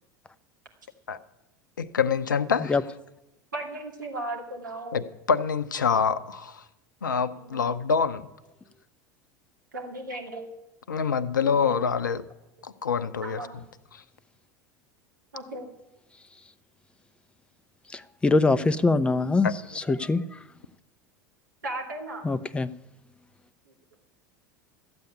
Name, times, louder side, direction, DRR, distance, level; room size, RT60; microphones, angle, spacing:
voice 1, 1.8-2.8 4.9-6.6 7.0-8.3 10.9-12.2 12.6-13.4 13.9-14.0 19.4-19.5, left 6 dB, 75° left, 14 dB, 0.7 m, -26 dB
voice 2, 3.5-5.1 7.4-7.7 9.7-10.5 11.4-11.8 13.2-13.6 15.3-15.7 21.6-22.3, right 2 dB, 75° right, 1 dB, 2.7 m, -36 dB
voice 3, 17.9-19.5 19.8-20.2 22.2-22.7, left 3 dB, 10° left, 13 dB, 0.6 m, -23 dB
13.5 x 8.4 x 9.7 m, 0.92 s
figure-of-eight pair, 75°, 10 cm